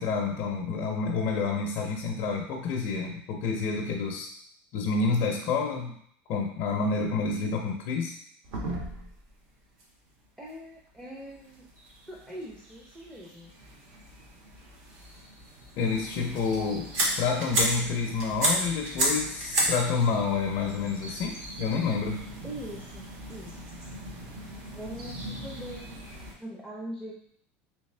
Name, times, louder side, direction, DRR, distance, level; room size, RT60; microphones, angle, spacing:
voice 1, 0.0-4.3 4.7-5.9 6.3-8.2 15.8-16.9 17.2-22.2, left 4 dB, 50° left, 0 dB, 0.6 m, -28 dB
sound 1, 8.4-9.3 9.8-9.9 10.2-10.3 11.2-26.3, right 1 dB, 65° right, 1.3 m, -34 dB
voice 2, 10.4-11.7 12.1-13.5 15.1-15.2 22.4-23.6 24.7-27.1, equal, 5° right, -4 dB, 0.5 m, -42 dB
3.4 x 3.1 x 3.2 m, 0.67 s
supercardioid pair, 140°, 6 cm